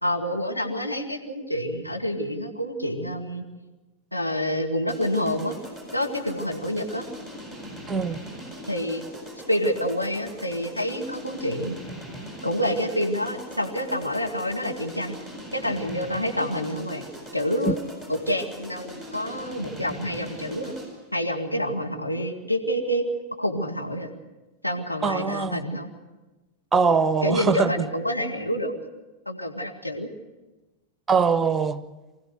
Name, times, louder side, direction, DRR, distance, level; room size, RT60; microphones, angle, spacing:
voice 1, 0.0-3.4 4.1-5.5 5.9-7.0 8.7-9.0 9.5-11.8 12.4-15.2 15.5-17.0 17.3-17.8 18.1-20.7 21.1-23.0 23.4-24.1 24.6-25.9 27.2-28.7 29.3-30.1, equal, 90° left, 1 dB, 2.1 m, -27 dB
sound 1, 4.9-21.1, equal, 15° left, 7.4 m, -41 dB
voice 2, 7.9-8.2 17.7-17.8 25.0-25.6 26.7-27.9 31.1-31.8, right 5 dB, 15° right, 13 dB, 1.0 m, -22 dB
24.5 x 16.0 x 8.1 m, 1.1 s
figure-of-eight pair, 90°, 0 cm